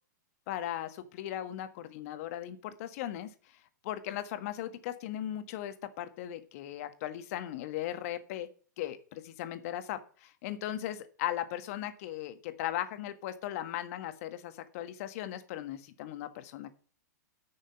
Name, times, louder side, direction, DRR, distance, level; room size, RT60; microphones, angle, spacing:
voice 1, 0.5-3.3 3.8-8.5 8.8-16.7, left 12 dB, 50° left, 10 dB, 1.6 m, -38 dB
9.5 x 6.4 x 7.8 m, 0.41 s
hypercardioid pair, 115°, 10 cm